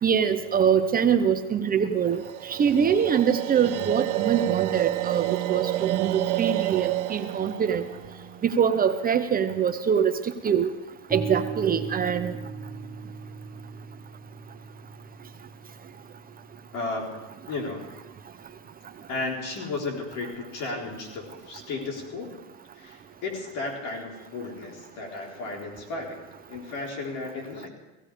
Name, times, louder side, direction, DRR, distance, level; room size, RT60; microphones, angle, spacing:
voice 1, 0.0-7.9 8.4-10.7 11.1-12.3, right 7 dB, 25° right, 8 dB, 0.8 m, -24 dB
sound 1, 2.1-9.3, right 16 dB, 80° right, 0.9 m, -29 dB
sound 2, 11.1-19.0, right 5 dB, ahead, 2.0 m, -39 dB
voice 2, 16.7-17.2 17.5-17.9 19.1-22.3 22.8-26.2 26.5-27.7, left 3 dB, 60° left, 0 dB, 4.3 m, -34 dB
17.0 x 16.5 x 5.0 m, 1.1 s
supercardioid pair, 130°, 34 cm